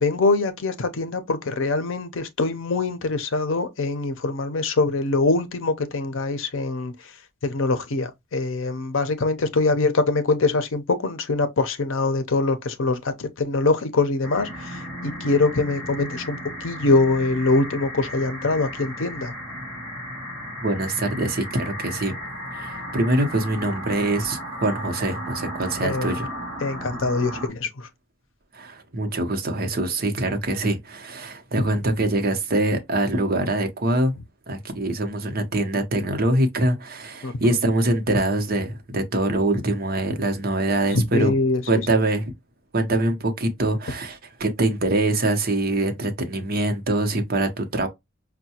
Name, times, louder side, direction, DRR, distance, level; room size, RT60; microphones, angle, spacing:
voice 1, 0.0-6.9 7.4-19.3 25.8-26.2 26.6-27.9 37.2-37.6 40.9-41.6, left 3 dB, 75° left, 0.6 m, -23 dB
sound 1, 14.2-27.5, equal, ahead, 2.0 m, -35 dB
voice 2, 20.6-22.2 22.5-26.3 28.5-34.1 34.5-41.3 41.7-42.3 42.7-47.9, right 1 dB, 50° right, 0.8 m, -24 dB
5.4 x 2.2 x 2.8 m
head